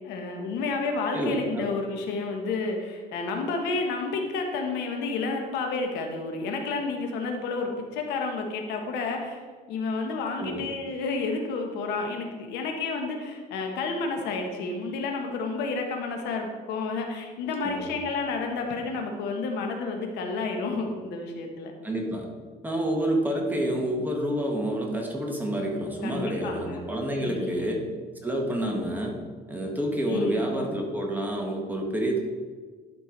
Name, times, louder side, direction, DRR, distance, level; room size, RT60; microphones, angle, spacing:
voice 1, 0.0-9.4 9.7-21.7 23.2-23.5 26.0-27.7 30.1-30.6, left 3 dB, 85° left, 3 dB, 1.3 m, -31 dB
voice 2, 1.1-1.7 10.4-10.7 17.6-17.9 21.8-22.3 22.6-27.8 28.2-29.2 29.5-32.2, right 1 dB, 10° right, 0 dB, 1.7 m, -28 dB
11.5 x 4.6 x 4.6 m, 1.5 s
cardioid pair, 110°, 17 cm